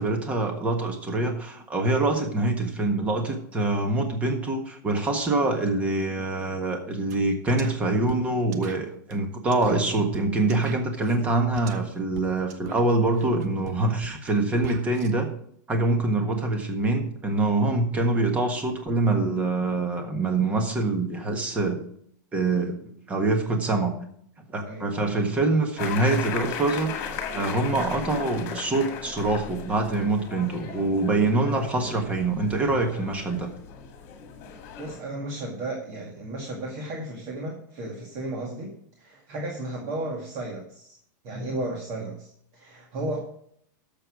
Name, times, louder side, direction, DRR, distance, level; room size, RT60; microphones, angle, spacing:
voice 1, 0.0-15.3 15.7-21.8 22.3-22.8 23.1-23.9 24.5-33.5, right 2 dB, 15° right, 4 dB, 1.5 m, -25 dB
sound 1, 7.1-7.2 7.5-15.1, right 6 dB, 60° right, 1.1 m, -42 dB
sound 2, 25.8-35.0, left 6 dB, 35° left, 2.0 m, -37 dB
voice 2, 34.8-38.7 39.0-41.0 41.2-43.2, right 1 dB, 35° right, 0 dB, 2.0 m, -34 dB
12.5 x 7.0 x 4.9 m, 0.67 s
supercardioid pair, 165°, 10 cm